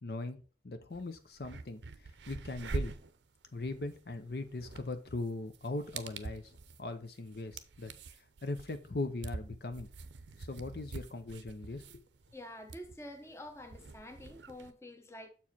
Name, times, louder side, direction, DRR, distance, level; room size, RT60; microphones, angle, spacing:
voice 1, 0.0-0.4 0.6-2.9 3.5-6.5 6.8-7.9 8.4-9.9 10.4-12.0, left 2 dB, 60° left, 0.7 m, -39 dB
sound 1, 0.9-1.0 1.3-14.7, right 3 dB, 85° right, 0.6 m, -45 dB
voice 2, 12.3-15.3, left 1 dB, 15° left, 0.9 m, -48 dB
7.1 x 4.8 x 4.3 m
head